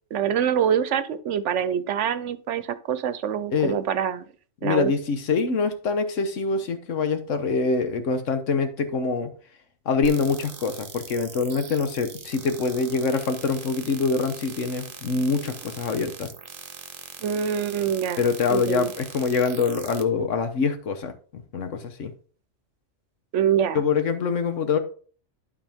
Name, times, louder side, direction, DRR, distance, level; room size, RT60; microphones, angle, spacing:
voice 1, 0.1-4.2 4.6-4.9 17.2-18.2 18.5-18.9 23.3-23.8, right 8 dB, 75° right, 1.0 m, -25 dB
voice 2, 4.6-9.3 9.8-16.3 18.2-22.1 23.7-24.8, left 4 dB, 80° left, 1.4 m, -25 dB
sound 1, 10.0-20.0, right 6 dB, 50° right, 1.0 m, -41 dB
11.5 x 4.7 x 3.5 m
omnidirectional pair, 1.3 m